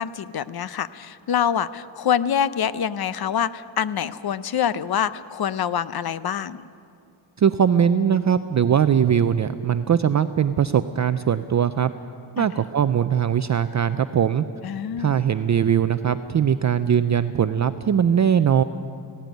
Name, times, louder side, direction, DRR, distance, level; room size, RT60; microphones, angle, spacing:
voice 1, 0.0-6.6 12.4-12.5 14.6-15.2, left 9 dB, 50° left, 16 dB, 0.7 m, -25 dB
voice 2, 7.4-11.9 12.4-14.5 15.0-18.6, right 8 dB, 40° right, 11 dB, 0.5 m, -20 dB
17.5 x 16.5 x 9.2 m, 2.5 s
wide cardioid pair, 115°, 48 cm